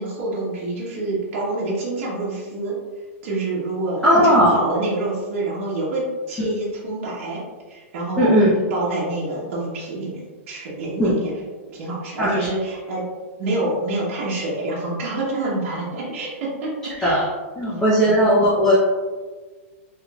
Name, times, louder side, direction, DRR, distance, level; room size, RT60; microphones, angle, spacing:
voice 1, 0.0-2.7 3.2-7.4 7.7-11.4 11.7-13.0 13.4-17.3 17.7-18.1, right 2 dB, 60° right, -6 dB, 1.0 m, -27 dB
voice 2, 4.0-4.5 8.2-8.5 11.0-11.1 12.2-12.5 17.0-17.2 17.6-18.7, equal, 10° left, -9 dB, 0.6 m, -17 dB
3.6 x 3.2 x 2.3 m, 1.4 s
supercardioid pair, 160°, 8 cm